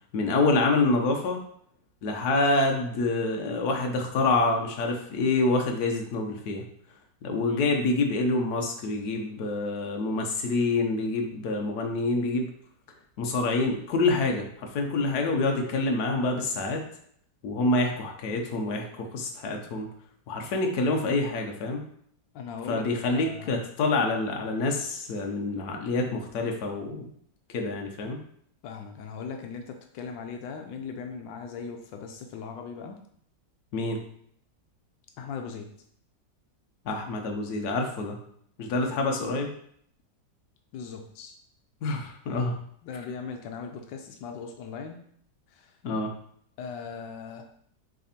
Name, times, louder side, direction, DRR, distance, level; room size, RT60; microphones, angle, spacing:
voice 1, 0.1-1.4 2.0-6.6 7.2-12.5 13.2-16.8 17.4-19.9 20.3-21.8 22.7-27.1 27.5-28.2 33.7-34.0 36.8-38.2 38.6-39.5 41.8-42.7 45.8-46.1, left 2 dB, 60° left, 2 dB, 1.4 m, -27 dB
voice 2, 22.3-22.9 23.1-23.6 28.6-33.0 35.2-35.7 38.8-39.0 40.7-41.3 42.8-45.1 45.5-45.8 46.6-47.4, left 5 dB, 85° left, 4 dB, 1.4 m, -39 dB
6.5 x 3.4 x 4.3 m, 0.65 s
omnidirectional pair, 2.0 m